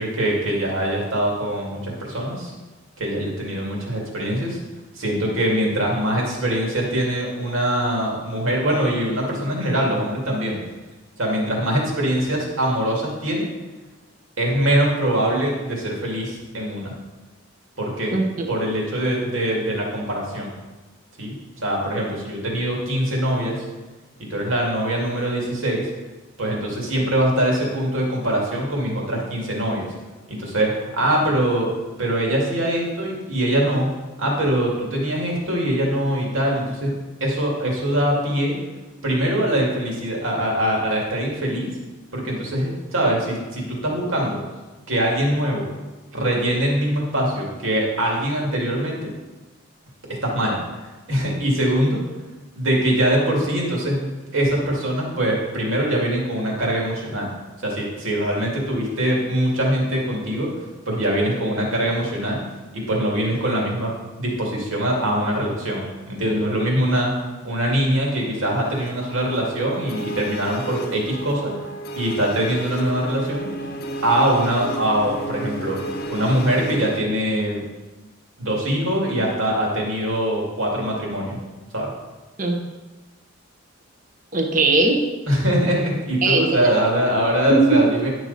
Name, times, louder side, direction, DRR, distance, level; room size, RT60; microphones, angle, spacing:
voice 1, 0.0-2.5 3.0-4.6 5.0-10.6 11.2-13.5 14.4-16.9 17.8-18.1 18.5-20.5 21.2-23.6 24.3-25.9 26.4-29.9 30.3-31.7 32.0-38.6 39.0-41.7 42.1-44.4 44.9-45.7 46.1-49.1 50.2-50.6 51.1-52.0 52.6-54.0 54.3-57.3 57.6-60.5 60.9-62.4 62.7-71.5 72.0-73.5 74.0-77.6 78.4-81.4 81.7-81.9 85.3-88.1, right 1 dB, 80° right, -2 dB, 2.3 m, -23 dB
voice 2, 18.1-18.5 82.4-82.6 84.3-85.0 86.2-86.7 87.5-87.8, right 2 dB, 40° right, 3 dB, 1.0 m, -19 dB
sound 1, 68.4-77.0, right 1 dB, 50° left, 0.8 m, -33 dB
10.5 x 6.2 x 4.1 m, 1.2 s
head